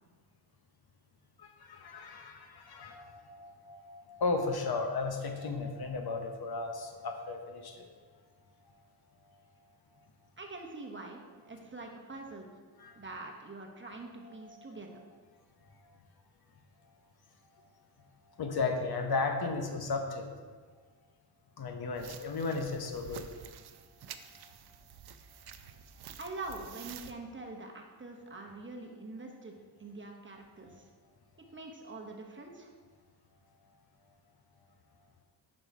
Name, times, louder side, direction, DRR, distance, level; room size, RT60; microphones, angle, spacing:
voice 1, 1.4-7.9 12.8-13.0 14.2-15.0 18.3-20.3 21.6-23.2 24.2-24.5 30.7-30.8, left 3 dB, 55° left, 5 dB, 0.8 m, -35 dB
voice 2, 10.4-12.5 13.0-14.9 26.2-30.9 31.5-32.7, right 2 dB, 25° right, 1 dB, 0.9 m, -44 dB
sound 1, 22.0-27.1, right 8 dB, 60° right, 0.5 m, -49 dB
5.6 x 5.4 x 4.6 m, 1.5 s
cardioid pair, 85°, 44 cm